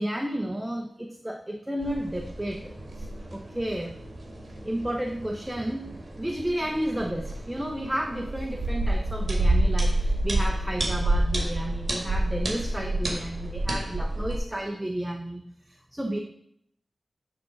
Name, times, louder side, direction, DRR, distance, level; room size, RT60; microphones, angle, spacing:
voice 1, 0.0-3.9 4.6-16.2, right 1 dB, 10° right, 3 dB, 0.6 m, -32 dB
sound 1, 1.8-14.4, right 1 dB, 45° right, 1.6 m, -29 dB
8.7 x 3.8 x 5.6 m, 0.72 s
wide cardioid pair, 110°, 0 cm